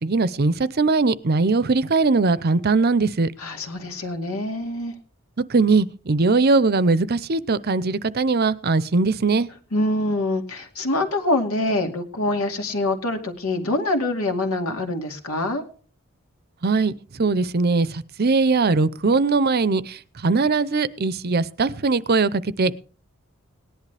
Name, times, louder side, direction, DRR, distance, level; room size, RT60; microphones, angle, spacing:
voice 1, 0.0-3.3 5.5-9.5 16.6-16.9 17.2-17.9 18.2-19.8 20.2-22.8, right 3 dB, 45° right, 0.6 m, -20 dB
voice 2, 3.4-4.9 9.7-15.6, left 2 dB, 85° left, 2.3 m, -25 dB
18.0 x 11.0 x 3.4 m
head